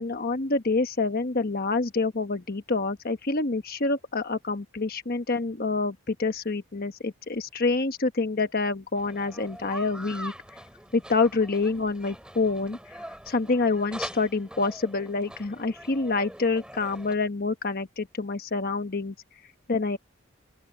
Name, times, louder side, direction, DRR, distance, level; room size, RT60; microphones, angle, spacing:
voice 1, 0.0-10.3 10.9-12.8 13.3-19.1 19.7-20.0, left 3 dB, 45° left, 1.1 m, -27 dB
sound 1, 9.0-17.1, right 1 dB, 5° right, 2.8 m, -43 dB
open air
head